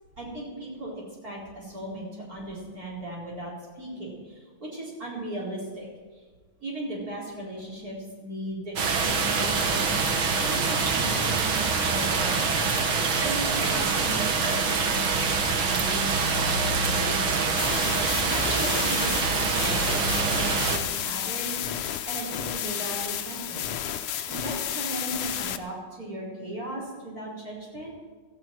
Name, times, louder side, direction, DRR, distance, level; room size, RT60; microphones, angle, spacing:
voice 1, 0.2-6.2 6.6-12.7 13.2-15.0 15.6-17.6 18.1-23.7 24.3-27.9, right 1 dB, 40° right, -4 dB, 4.9 m, -37 dB
sound 1, 8.8-20.8, right 4 dB, 70° right, 2.3 m, -25 dB
sound 2, 17.6-25.6, left 10 dB, 80° left, 1.7 m, -32 dB
17.0 x 15.5 x 4.6 m, 1.5 s
omnidirectional pair, 2.4 m